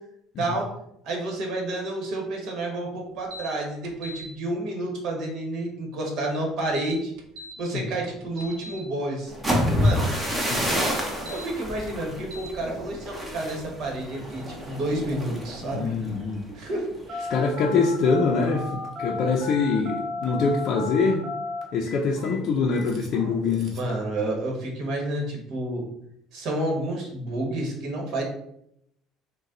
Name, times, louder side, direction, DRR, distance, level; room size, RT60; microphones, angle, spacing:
voice 1, 0.4-0.7 1.0-7.1 7.6-9.3 9.8-10.1 11.3-15.9 16.5-17.3 23.7-25.8 26.3-28.2, right 1 dB, 60° right, 0 dB, 1.3 m, -30 dB
sound 1, 3.3-3.5 3.8-4.3 6.6-7.5 8.0-8.8 11.1-11.4 12.3-12.5, equal, 80° right, 0.6 m, -40 dB
sound 2, 9.3-17.1 17.5-17.8 18.2-18.6, equal, 10° right, 0.9 m, -28 dB
voice 2, 15.7-16.4 17.3-21.2 21.7-23.7, left 4 dB, 55° left, -1 dB, 0.5 m, -24 dB
Telephone, 17.1-23.9, left 3 dB, 40° right, 1.0 m, -34 dB
4.0 x 2.2 x 3.7 m, 0.76 s
cardioid pair, 115°, 0 cm